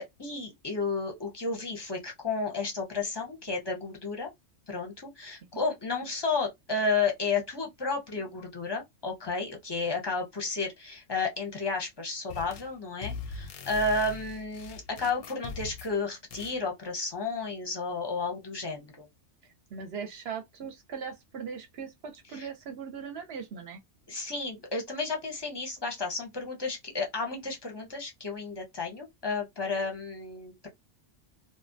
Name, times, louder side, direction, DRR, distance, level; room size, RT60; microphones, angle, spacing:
voice 1, 0.0-4.3 4.7-19.1 22.3-22.5 24.1-30.7, left 3 dB, 25° left, 0.6 m, -32 dB
sound 1, 12.3-12.7 13.0-16.0 16.3-16.6, left 4 dB, 65° left, 0.7 m, -41 dB
voice 2, 19.7-23.8, right 6 dB, 65° right, 0.8 m, -39 dB
2.5 x 2.1 x 2.5 m
omnidirectional pair, 1.2 m